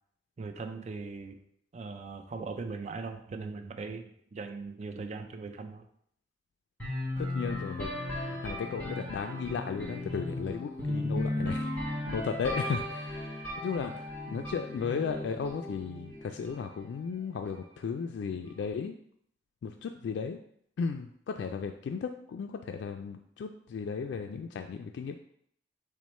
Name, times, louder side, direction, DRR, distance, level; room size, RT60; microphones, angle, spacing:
voice 1, 0.4-1.4 1.7-5.8, right 4 dB, 40° right, 6 dB, 0.4 m, -39 dB
sound 1, 6.8-16.6, left 1 dB, 10° left, 1.4 m, -36 dB
voice 2, 7.2-19.0 19.6-20.4 20.8-25.2, left 5 dB, 85° left, 5 dB, 0.3 m, -35 dB
6.0 x 2.1 x 4.2 m, 0.68 s
head